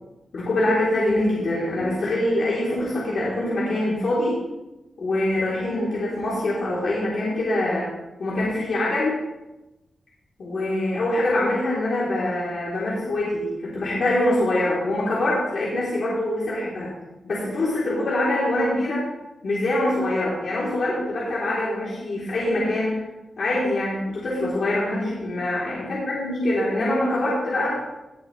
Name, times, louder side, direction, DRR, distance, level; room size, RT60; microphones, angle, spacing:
voice 1, 0.3-4.4 5.0-7.9 8.2-9.2 10.4-16.9 17.2-19.0 19.4-23.0 23.4-27.8, left 1 dB, 55° left, -7 dB, 3.3 m, -24 dB
19.0 x 7.4 x 3.2 m, 1.0 s
wide cardioid pair, 150°, 0 cm